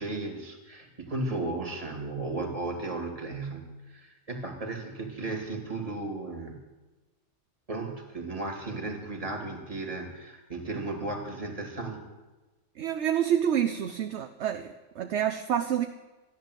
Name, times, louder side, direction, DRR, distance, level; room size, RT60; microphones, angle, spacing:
voice 1, 0.0-6.6 7.7-12.0, right 2 dB, 30° right, 2 dB, 2.5 m, -35 dB
voice 2, 12.8-15.9, right 9 dB, 65° right, 7 dB, 1.0 m, -28 dB
14.0 x 10.5 x 8.0 m, 1.2 s
omnidirectional pair, 1.3 m